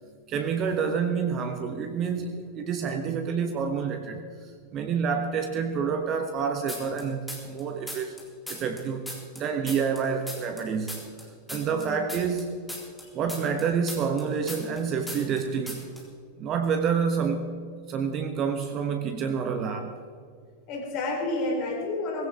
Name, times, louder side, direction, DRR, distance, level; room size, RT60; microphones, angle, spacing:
voice 1, 0.3-4.3 4.7-8.1 8.5-9.0 9.3-11.0 11.5-12.5 13.1-15.9 16.4-17.5 17.9-20.0, right 6 dB, 35° right, 6 dB, 1.2 m, -28 dB
sound 1, 6.7-7.6 7.9-10.6 10.9-14.8 15.1-15.4 15.7-16.0, left 1 dB, 5° left, 3.9 m, -38 dB
voice 2, 11.6-12.1 20.7-22.3, left 2 dB, 40° left, 0 dB, 3.7 m, -30 dB
20.5 x 16.5 x 3.6 m, 2.1 s
figure-of-eight pair, 90°, 0 cm